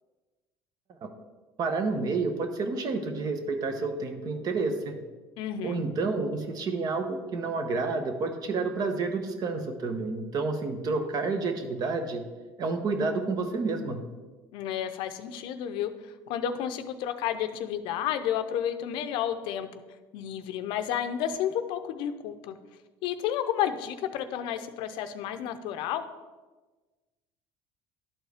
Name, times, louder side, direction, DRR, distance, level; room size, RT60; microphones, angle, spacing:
voice 1, 1.6-5.0 5.6-12.2 12.6-14.0, right 3 dB, 50° right, 6 dB, 1.0 m, -29 dB
voice 2, 5.4-5.8 14.5-15.9 16.3-19.7 20.1-22.5 23.0-26.0, left 10 dB, 70° left, 10 dB, 0.6 m, -31 dB
11.5 x 4.5 x 3.5 m, 1.3 s
supercardioid pair, 95°, 9 cm